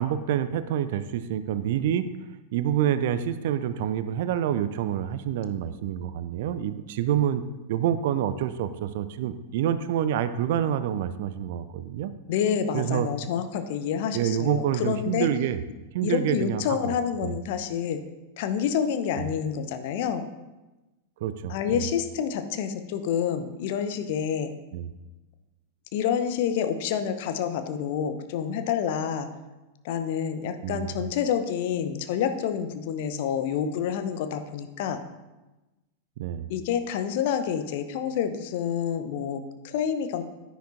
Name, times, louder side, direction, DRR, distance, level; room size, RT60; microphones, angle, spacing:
voice 1, 0.0-2.1 2.5-7.4 7.7-12.1 12.7-13.1 14.1-15.6 15.9-16.9 17.2-17.3 19.2-19.3 21.2-21.8 24.7-24.9 30.6-31.1 36.2-36.5, right 10 dB, 55° right, 13 dB, 0.5 m, -27 dB
voice 2, 12.3-15.3 16.0-18.0 18.4-20.2 21.5-24.5 25.9-29.3 29.8-35.0 36.5-40.2, left 8 dB, 50° left, 9 dB, 0.7 m, -28 dB
10.0 x 10.0 x 2.6 m, 1.1 s
figure-of-eight pair, 90°, 0 cm